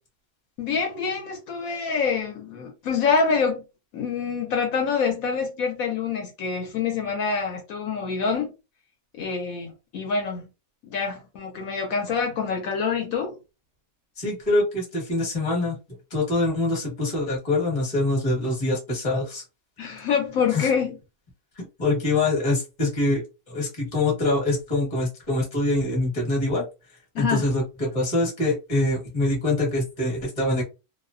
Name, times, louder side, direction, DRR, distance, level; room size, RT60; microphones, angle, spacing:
voice 1, 0.6-3.6 3.9-8.5 9.2-10.5 10.9-13.4 19.8-21.0 27.1-27.4, left 5 dB, 70° left, 1.0 m, -26 dB
voice 2, 14.2-15.8 16.1-19.4 20.5-20.7 21.6-26.7 27.2-30.6, left 2 dB, 25° left, 1.1 m, -24 dB
2.5 x 2.1 x 2.4 m
omnidirectional pair, 1.6 m